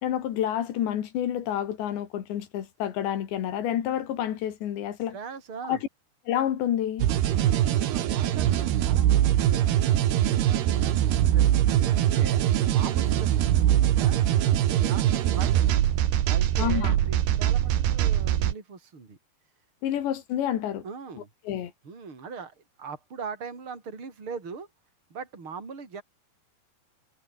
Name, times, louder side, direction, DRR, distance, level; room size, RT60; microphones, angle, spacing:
voice 1, 0.0-5.2 5.7-5.8 6.3-7.1 16.6-16.9 19.8-20.8 21.5-21.7, left 10 dB, 80° left, 4.4 m, -28 dB
voice 2, 5.1-5.8 7.4-12.4 12.7-14.2 14.7-15.7 16.2-19.2 20.8-21.3 21.8-24.7 25.1-26.0, right 5 dB, 30° right, 5.6 m, -41 dB
sound 1, 7.0-18.5, right 12 dB, 70° right, 3.7 m, -23 dB
omnidirectional pair, 5.0 m